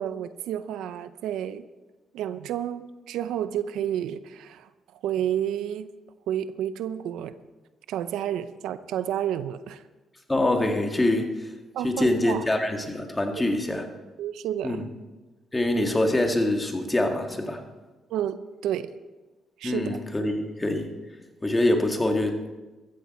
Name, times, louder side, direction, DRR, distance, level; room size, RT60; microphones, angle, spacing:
voice 1, 0.0-1.6 2.1-4.7 5.0-5.9 6.3-7.4 7.9-9.8 11.7-12.4 14.2-14.8 18.1-18.9 19.6-20.0, right 10 dB, 85° right, 13 dB, 0.6 m, -30 dB
voice 2, 10.3-11.5 11.8-13.9 14.6-14.8 15.5-17.6 19.6-20.9 21.4-22.4, left 1 dB, 15° left, 3 dB, 2.1 m, -24 dB
14.5 x 14.5 x 4.4 m, 1.2 s
cardioid pair, 90°, 0 cm